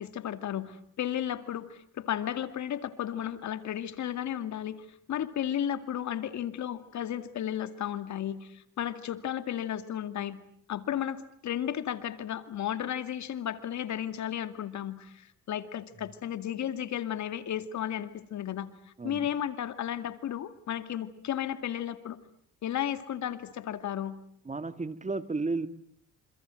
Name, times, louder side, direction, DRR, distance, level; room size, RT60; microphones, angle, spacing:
voice 1, 0.0-10.4 10.7-18.7 19.0-22.2 22.6-24.2, left 10 dB, 70° left, 11 dB, 2.3 m, -34 dB
voice 2, 24.5-25.7, right 3 dB, 25° right, 12 dB, 2.0 m, -33 dB
28.0 x 27.0 x 7.7 m, 0.64 s
cardioid pair, 90°, 30 cm